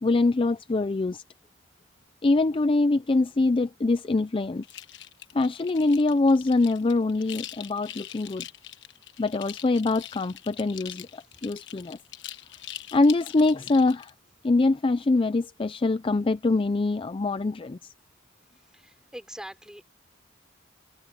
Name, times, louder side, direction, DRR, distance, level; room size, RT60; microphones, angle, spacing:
voice 1, 0.0-1.2 2.2-4.6 5.3-8.4 9.2-12.0 12.9-14.1 14.4-17.9, left 3 dB, 25° left, 0.4 m, -24 dB
sound 1, 4.6-14.1, left 12 dB, 65° left, 1.3 m, -43 dB
voice 2, 12.6-13.0 18.6-19.8, equal, 5° right, 4.7 m, -44 dB
head